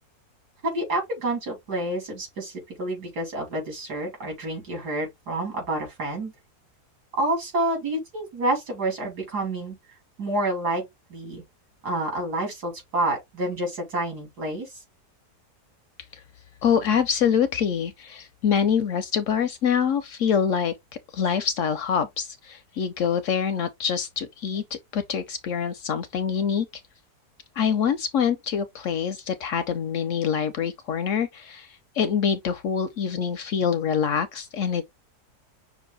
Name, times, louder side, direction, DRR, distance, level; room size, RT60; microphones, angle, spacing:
voice 1, 0.6-6.3 7.2-9.8 10.2-10.8 11.1-11.4 11.8-14.8, right 1 dB, 85° right, 3.3 m, -28 dB
voice 2, 16.6-20.7 21.1-26.7 27.6-34.8, left 7 dB, 70° left, 0.8 m, -25 dB
6.1 x 2.2 x 3.9 m
omnidirectional pair, 1.7 m